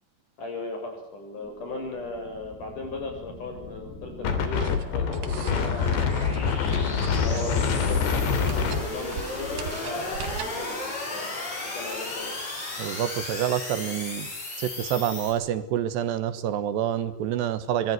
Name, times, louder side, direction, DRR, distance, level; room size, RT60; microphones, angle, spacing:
voice 1, 0.4-6.5 7.2-11.3 11.6-12.4, left 2 dB, 45° left, 3 dB, 8.7 m, -37 dB
sound 1, 1.4-15.3, left 2 dB, 65° left, 9.9 m, -36 dB
Wind, 4.2-9.7, left 6 dB, 85° left, 5.0 m, -26 dB
sound 2, 4.5-10.7, right 6 dB, 60° right, 3.2 m, -41 dB
voice 2, 12.8-14.3 14.6-17.9, right 10 dB, 80° right, 13 dB, 3.5 m, -27 dB
24.5 x 21.5 x 9.4 m, 0.68 s
omnidirectional pair, 4.9 m